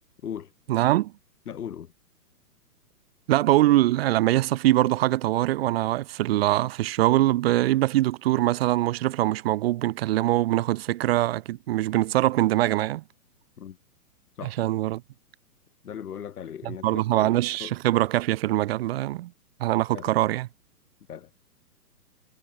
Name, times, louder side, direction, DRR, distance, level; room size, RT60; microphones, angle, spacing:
voice 1, 0.7-1.1 3.3-13.0 14.6-15.0 16.7-19.3 19.6-20.5, right 15 dB, 40° right, 1.6 m, -23 dB
voice 2, 1.5-1.9 13.6-13.8 14.3-14.6 15.8-17.3 17.6-17.8 19.9-20.1 21.1-21.3, left 8 dB, 70° left, 4.6 m, -38 dB
hypercardioid pair, 145°, 47 cm